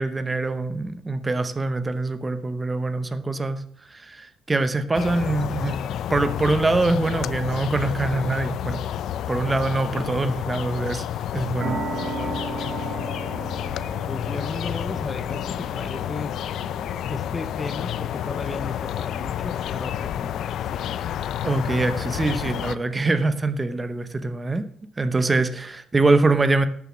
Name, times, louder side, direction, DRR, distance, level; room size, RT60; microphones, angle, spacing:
voice 1, 0.0-3.6 3.9-5.8 6.1-8.8 9.3-11.1 11.3-11.8 21.4-24.7 25.0-26.7, right 3 dB, 15° right, 11 dB, 0.8 m, -24 dB
sound 1, 4.9-22.8, left 10 dB, 65° left, 0.5 m, -30 dB
sound 2, 11.6-18.8, right 4 dB, 70° right, 2.1 m, -36 dB
voice 2, 12.0-12.4 14.1-16.4 17.1-20.9, left 3 dB, 20° left, 9 dB, 0.6 m, -35 dB
12.0 x 7.1 x 6.2 m, 0.63 s
cardioid pair, 155°, 0 cm